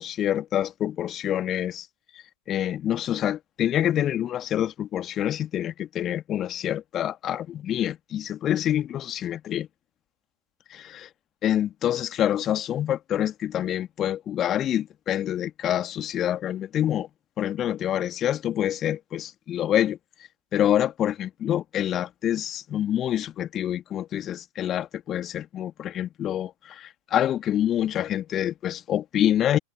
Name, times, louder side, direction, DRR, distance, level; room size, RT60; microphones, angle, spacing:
voice 1, 0.0-1.9 2.5-9.7 11.4-17.1 17.4-20.0 20.5-29.6, left 11 dB, 30° left, 2.3 m, -26 dB
figure-of-eight pair, 90°, 0 cm